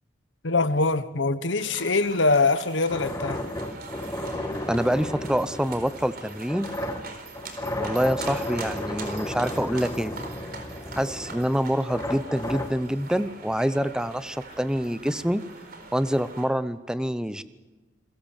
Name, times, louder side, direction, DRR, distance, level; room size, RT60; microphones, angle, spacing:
voice 1, 0.4-3.4, left 3 dB, 75° left, 1.3 m, -23 dB
sound 1, 1.6-16.5, right 4 dB, 50° right, 4.1 m, -43 dB
sound 2, 2.9-12.7, left 1 dB, 15° left, 1.8 m, -34 dB
voice 2, 4.7-6.8 7.7-10.1 11.0-15.4 15.9-17.4, equal, 5° right, 0.8 m, -26 dB
28.0 x 21.5 x 7.4 m
head